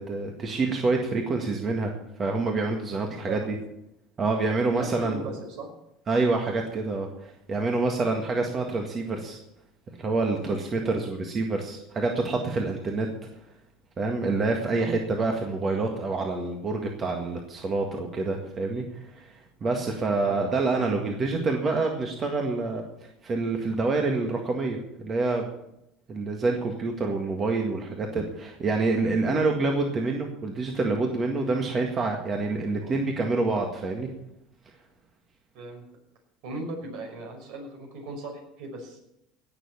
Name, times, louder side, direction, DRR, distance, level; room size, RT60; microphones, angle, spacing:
voice 1, 0.0-1.9 2.2-3.6 4.2-5.2 6.1-9.4 10.0-13.1 14.0-19.3 19.6-25.5 26.1-34.1, right 3 dB, 30° right, 2 dB, 1.8 m, -27 dB
voice 2, 4.7-5.7 10.8-11.0 14.7-14.9 20.2-20.6 32.8-32.9 35.5-35.9 36.4-39.0, right 2 dB, 65° right, 3 dB, 5.7 m, -38 dB
18.0 x 6.9 x 7.2 m, 0.84 s
supercardioid pair, 130°, 0 cm